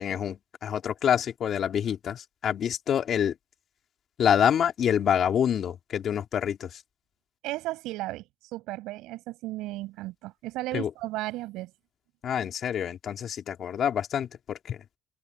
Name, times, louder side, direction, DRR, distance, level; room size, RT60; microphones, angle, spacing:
voice 1, 0.0-3.4 4.2-6.8 10.7-10.9 12.2-15.0, left 9 dB, 60° left, 2.8 m, -27 dB
voice 2, 7.4-11.7, right 18 dB, 85° right, 7.5 m, -35 dB
open air
cardioid pair, 85°, 0 cm